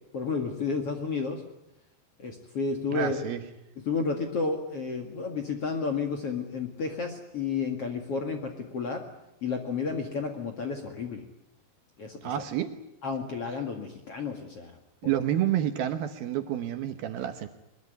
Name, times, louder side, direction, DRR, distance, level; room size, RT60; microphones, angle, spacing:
voice 1, 0.1-1.4 2.2-3.2 3.8-9.0 9.4-11.2 12.0-12.3 13.0-14.7, left 4 dB, 45° left, 4 dB, 2.2 m, -31 dB
voice 2, 2.9-3.4 12.2-12.7 15.0-17.5, right 11 dB, 70° right, 8 dB, 2.6 m, -29 dB
22.0 x 21.5 x 9.4 m, 0.87 s
omnidirectional pair, 5.0 m